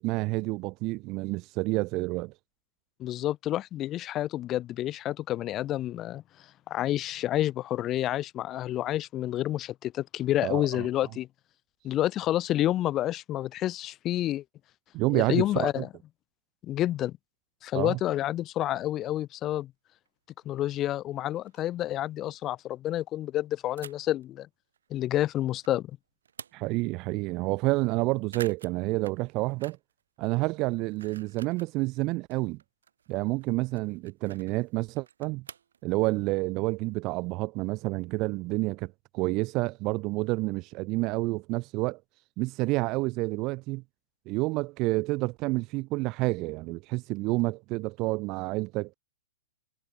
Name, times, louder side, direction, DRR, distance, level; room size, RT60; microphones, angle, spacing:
voice 1, 0.0-2.3 10.4-10.9 14.9-15.8 17.7-18.0 26.5-29.8 30.2-32.6 33.1-35.4 35.8-42.0 42.4-43.8 44.3-48.9, right 23 dB, 35° right, 0.5 m, -29 dB
voice 2, 3.0-6.2 6.7-11.3 11.8-14.4 15.1-15.9 16.6-17.1 17.6-19.7 20.5-24.5 24.9-25.9, left 13 dB, 25° left, 0.6 m, -29 dB
sound 1, 20.1-20.2 20.6-20.7 21.0-21.1 21.3-21.9 23.8-24.3 24.7-25.8 26.1-26.9 27.3-27.4 27.6-28.0 28.2-30.0 30.3-31.8 32.1-35.8, right 8 dB, 70° right, 3.3 m, -49 dB
figure-of-eight pair, 115°, 0 cm